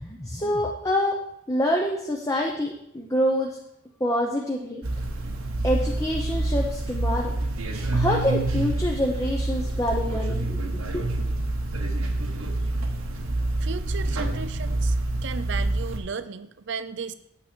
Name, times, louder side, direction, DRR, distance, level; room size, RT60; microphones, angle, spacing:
voice 1, 0.0-1.2 1.5-3.6 4.0-4.8 5.6-7.3 7.9-11.0, left 1 dB, 15° left, -1 dB, 0.7 m, -26 dB
sound 1, 4.8-16.0, right 2 dB, 80° right, 1.1 m, -27 dB
voice 2, 13.6-15.0 15.2-17.1, right 5 dB, 55° right, 13 dB, 0.5 m, -34 dB
8.8 x 7.1 x 4.5 m, 0.76 s
head